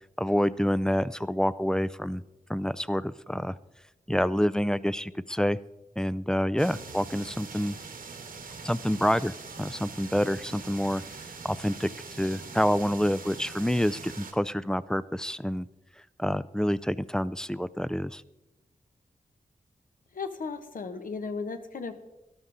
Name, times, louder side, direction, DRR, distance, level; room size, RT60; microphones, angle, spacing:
voice 1, 0.2-2.2 2.5-3.6 4.1-5.6 6.0-7.8 8.6-11.0 11.4-11.9 12.2-15.7 16.2-18.2, equal, 5° left, 18 dB, 0.3 m, -27 dB
sound 1, 6.6-14.3, right 4 dB, 85° right, 1.4 m, -43 dB
voice 2, 20.1-21.9, left 4 dB, 70° left, 9 dB, 1.0 m, -35 dB
12.5 x 12.0 x 3.9 m, 0.97 s
wide cardioid pair, 110°, 15 cm